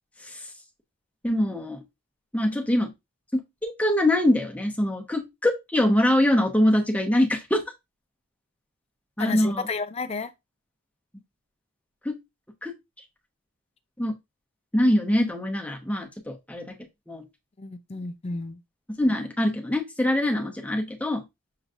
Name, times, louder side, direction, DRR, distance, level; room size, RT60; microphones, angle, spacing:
voice 1, 1.2-1.8 2.3-2.9 3.6-7.6 9.2-9.7 12.0-12.2 12.6-12.7 14.0-14.1 14.7-16.7 17.1-17.2 19.0-21.2, left 1 dB, 5° left, 0.9 m, -23 dB
voice 2, 9.2-10.3 17.6-18.6, left 4 dB, 30° left, 0.4 m, -31 dB
6.5 x 3.1 x 2.5 m
head